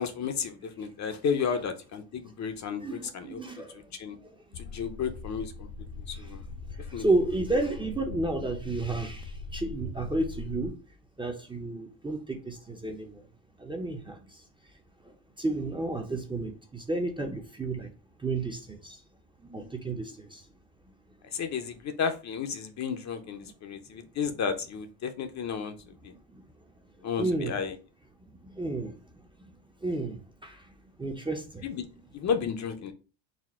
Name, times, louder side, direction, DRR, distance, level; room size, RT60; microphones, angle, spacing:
voice 1, 0.0-3.4 4.0-4.2 4.6-5.7 6.1-6.4 6.9-7.0 21.3-25.7 26.0-26.1 27.0-27.7 31.6-31.9 32.1-32.9, left 6 dB, 35° left, 0.6 m, -32 dB
voice 2, 2.8-3.9 4.2-4.6 6.1-6.3 6.7-10.8 11.2-13.2 13.6-14.4 15.0-17.9 18.2-19.0 19.4-20.5 23.4-23.5 26.1-26.4 27.0-27.6 28.4-29.0 29.4-29.5 29.8-31.7, right 2 dB, 10° right, 0.6 m, -32 dB
sound 1, 4.5-10.7, left 4 dB, 90° left, 0.9 m, -41 dB
4.2 x 2.1 x 4.2 m
supercardioid pair, 95°, 48 cm